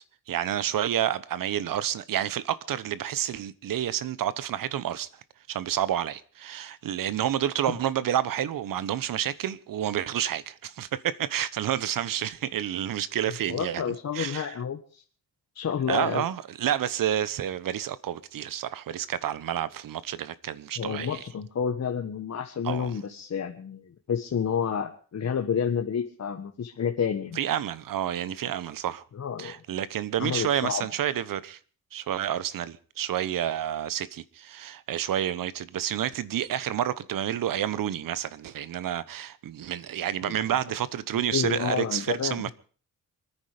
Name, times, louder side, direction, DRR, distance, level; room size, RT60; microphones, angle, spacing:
voice 1, 0.3-5.1 5.5-14.5 15.9-21.2 22.6-22.9 27.4-29.0 29.4-31.6 31.9-42.5, right 10 dB, 80° right, 1.0 m, -29 dB
voice 2, 13.5-15.0 15.5-16.2 20.8-27.4 29.1-29.5 30.2-30.9 40.2-40.4 41.3-42.4, left 7 dB, 55° left, 1.5 m, -30 dB
26.5 x 10.0 x 5.1 m
cardioid pair, 110°, 33 cm